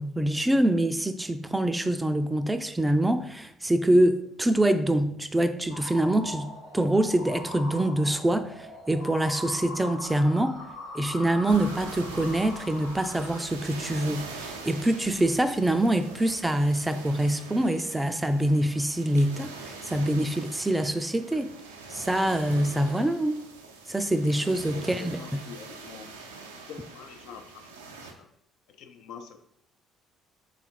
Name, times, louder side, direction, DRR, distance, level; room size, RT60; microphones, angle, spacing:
voice 1, 0.0-10.6 10.9-21.5 21.9-23.4 23.9-25.2, right 1 dB, 10° right, 9 dB, 0.3 m, -25 dB
sound 1, 5.7-13.4, left 2 dB, 90° left, 1.1 m, -41 dB
sound 2, 11.5-28.1, right 3 dB, 90° right, 0.4 m, -43 dB
voice 2, 24.7-26.1 26.7-28.3 28.7-29.4, left 7 dB, 65° left, 6 dB, 0.4 m, -45 dB
3.5 x 2.4 x 4.2 m, 0.71 s
hypercardioid pair, 50°, 0 cm